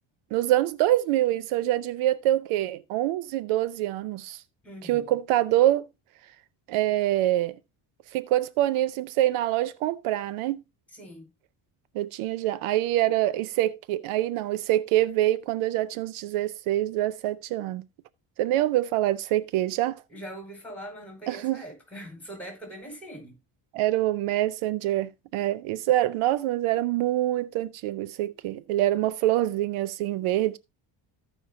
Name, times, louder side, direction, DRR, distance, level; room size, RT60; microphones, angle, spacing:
voice 1, 0.3-4.4 4.8-5.9 6.7-7.5 8.1-10.6 11.9-17.8 18.4-20.0 21.3-21.6 23.7-30.6, right 14 dB, 80° right, 0.6 m, -25 dB
voice 2, 4.6-5.2 10.9-11.3 20.1-23.4, right 1 dB, 5° left, 4.9 m, -42 dB
15.0 x 5.4 x 2.6 m
cardioid pair, 100°, 49 cm